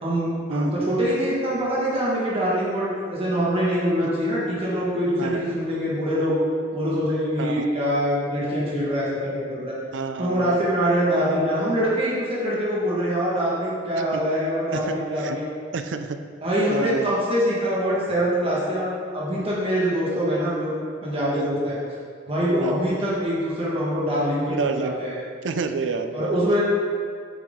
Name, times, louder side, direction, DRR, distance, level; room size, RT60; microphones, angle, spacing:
voice 1, 0.0-6.4 6.7-9.7 10.2-15.4 16.4-20.7 21.0-21.8 22.3-25.2 26.1-26.6, equal, 30° right, -7 dB, 1.7 m, -24 dB
voice 2, 5.2-5.6 7.4-7.6 9.9-10.6 14.1-14.2 14.7-15.4 15.7-16.2 16.7-17.1 21.3-21.5 22.6-22.9 24.5-25.0 25.4-26.3, right 4 dB, 80° right, 8 dB, 0.5 m, -29 dB
8.9 x 4.7 x 3.7 m, 2.1 s
head